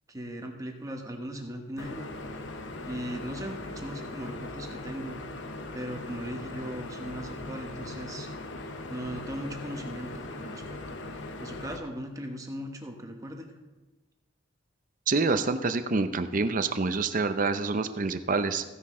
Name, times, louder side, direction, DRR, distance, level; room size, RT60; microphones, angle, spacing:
voice 1, 0.1-2.1 2.8-5.2 5.7-8.3 8.9-11.0 11.4-13.5, right 1 dB, 15° right, 3 dB, 1.1 m, -38 dB
sound 1, 1.8-11.8, left 2 dB, 65° left, 0.9 m, -39 dB
voice 2, 15.1-18.6, right 4 dB, 45° right, 10 dB, 0.6 m, -27 dB
15.0 x 9.8 x 3.7 m, 1.1 s
head